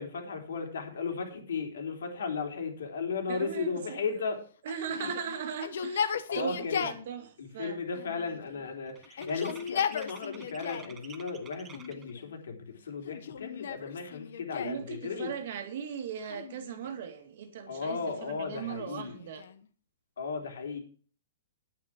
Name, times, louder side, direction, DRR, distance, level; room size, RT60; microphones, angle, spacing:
voice 1, 0.0-4.4 5.0-5.1 6.3-6.8 7.4-15.3 17.7-19.2 20.2-20.8, left 5 dB, 80° left, 3.7 m, -35 dB
voice 2, 3.3-4.2 4.6-7.8 14.6-19.4, right 8 dB, 45° right, 1.9 m, -38 dB
Yell, 4.7-7.1 7.9-8.7 9.1-11.0 11.7-12.3 13.0-14.9 16.2-17.1 17.9-19.6, left 7 dB, 55° left, 1.1 m, -36 dB
sound 1, 7.0-7.3 7.5-12.2, right 7 dB, 10° right, 0.8 m, -52 dB
9.8 x 9.3 x 6.0 m
hypercardioid pair, 180°, 0 cm